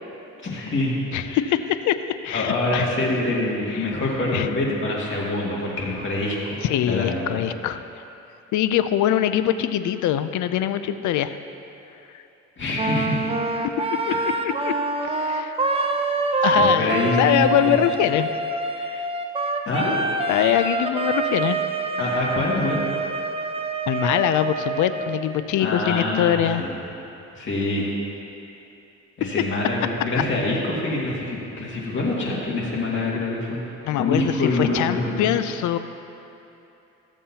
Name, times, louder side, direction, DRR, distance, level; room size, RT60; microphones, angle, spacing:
voice 1, 0.4-1.0 1.3-1.4 2.3-6.6 6.9-7.2 12.6-13.2 16.5-17.8 19.7-20.0 22.0-22.8 25.6-26.8 27.3-27.9 29.2-33.6 34.0-35.4, left 2 dB, 40° left, -5 dB, 2.2 m, -25 dB
voice 2, 1.1-2.0 2.2-2.9 3.8-3.9 4.3-4.5 6.6-7.8 8.5-11.4 12.1-12.2 14.1-14.2 14.4-14.7 15.0-15.6 16.4-18.3 18.8-19.1 20.3-21.6 23.9-26.6 33.9-35.8, left 11 dB, 75° left, 12 dB, 0.5 m, -23 dB
Wind instrument woodwind instrument, 12.7-25.2, right 2 dB, 20° right, 0.6 m, -25 dB
14.0 x 7.2 x 2.9 m, 2.9 s
cardioid pair, 90°, 30 cm